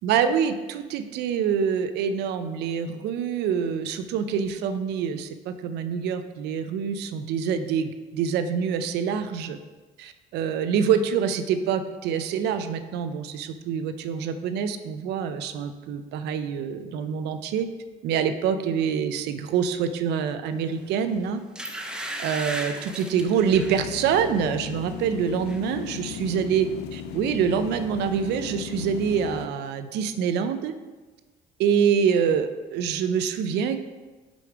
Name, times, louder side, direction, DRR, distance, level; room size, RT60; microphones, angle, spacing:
voice 1, 0.0-9.6 10.0-17.7 18.0-21.4 22.2-26.7 27.1-30.7 31.6-33.8, right 7 dB, 80° right, 10 dB, 0.5 m, -26 dB
sound 1, 20.9-21.0 21.6-23.9 24.3-24.6 24.9-25.6 25.9-26.0, right 1 dB, 5° right, 0.6 m, -35 dB
sound 2, 23.5-29.5, left 10 dB, 80° left, 0.4 m, -37 dB
5.3 x 4.9 x 4.6 m, 1.3 s
cardioid pair, 110°, 17 cm